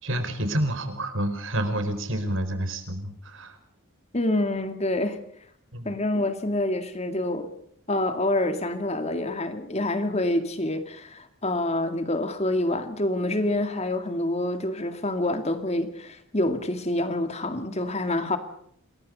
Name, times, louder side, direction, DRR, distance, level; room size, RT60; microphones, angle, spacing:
voice 1, 0.0-3.6 5.7-6.0, right 1 dB, 60° right, 4.8 m, -29 dB
voice 2, 4.1-5.2 5.8-7.5 7.9-18.4, left 1 dB, 30° left, 2.2 m, -27 dB
28.0 x 21.5 x 5.3 m
head